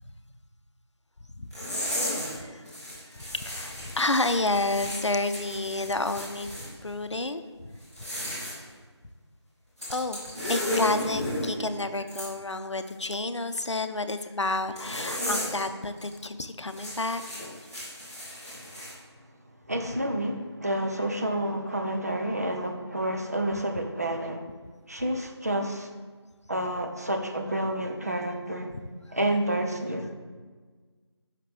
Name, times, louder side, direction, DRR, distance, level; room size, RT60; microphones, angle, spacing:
sound 1, 1.5-2.4 2.6-6.7 7.8-8.6 9.8-11.5 12.1-12.3 14.8-15.6 16.0-16.1 16.7-18.9, left 1 dB, 5° right, 1.1 m, -34 dB
voice 1, 1.8-2.7 3.1-7.8 9.9-10.2 10.4-17.2 29.1-29.2, left 2 dB, 85° left, 10 dB, 0.6 m, -30 dB
voice 2, 19.7-24.4 24.9-25.9 26.5-28.7 29.1-30.1, right 1 dB, 35° right, 3 dB, 0.6 m, -29 dB
7.5 x 5.7 x 3.4 m, 1.5 s
figure-of-eight pair, 170°, 15 cm